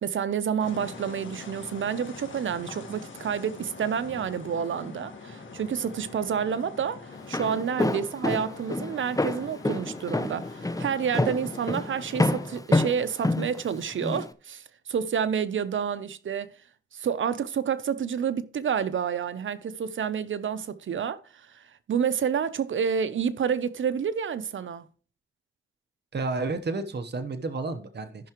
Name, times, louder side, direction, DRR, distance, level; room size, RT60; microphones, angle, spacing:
voice 1, 0.0-16.5 16.9-24.9, right 7 dB, 85° right, 0.7 m, -29 dB
sound 1, 0.6-12.6, left 4 dB, 85° left, 1.8 m, -44 dB
Walk footsteps, 7.1-14.3, left 2 dB, 20° left, 0.9 m, -27 dB
voice 2, 26.1-28.3, right 3 dB, 60° right, 1.0 m, -31 dB
14.5 x 5.8 x 3.0 m
cardioid pair, 50°, 20 cm